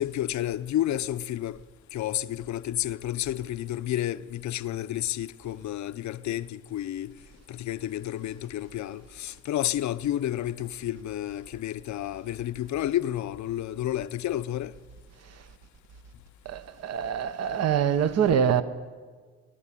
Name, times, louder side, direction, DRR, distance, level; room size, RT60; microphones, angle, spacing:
voice 1, 0.0-1.6 1.9-7.1 7.5-14.7, left 12 dB, 70° left, 0.7 m, -30 dB
voice 2, 16.4-18.6, right 8 dB, 60° right, 1.0 m, -25 dB
23.0 x 11.5 x 9.9 m
cardioid pair, 90°, 30 cm